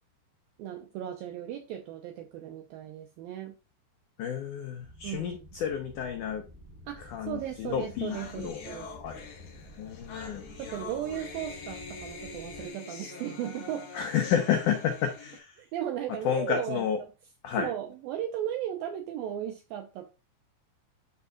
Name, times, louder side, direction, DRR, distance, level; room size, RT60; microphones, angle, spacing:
voice 1, 0.6-3.6 5.0-5.4 6.9-8.9 10.6-13.9 15.6-16.9 17.6-20.1, right 11 dB, 80° right, 4 dB, 2.2 m, -36 dB
voice 2, 4.2-6.4 7.1-8.6 9.0-9.2 9.8-10.4 13.9-15.6 16.2-17.0 17.4-17.7, left 8 dB, 90° left, 4 dB, 1.8 m, -30 dB
sound 1, 4.8-12.7, left 1 dB, 20° right, 1.9 m, -51 dB
sound 2, 7.5-7.6 7.8-15.4, left 4 dB, 55° left, 1.9 m, -44 dB
11.5 x 5.4 x 2.4 m, 0.30 s
omnidirectional pair, 5.0 m